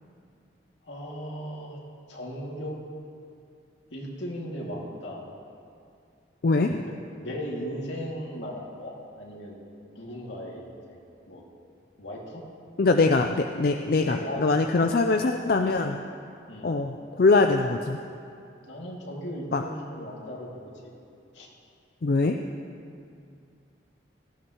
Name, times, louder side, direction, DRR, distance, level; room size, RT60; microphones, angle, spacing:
voice 1, 0.9-1.8 2.1-2.8 3.9-5.2 6.7-9.6 9.9-11.0 11.3-11.4 12.0-12.4 14.0-14.4 16.5-16.7 18.7-20.5 20.8-20.9 21.3-21.5, equal, 80° left, -3 dB, 2.4 m, -37 dB
voice 2, 6.4-6.7 12.8-16.0 16.6-18.0 19.5-19.6 22.0-22.4, left 3 dB, 50° left, 4 dB, 0.4 m, -23 dB
17.5 x 14.0 x 3.0 m, 2.4 s
head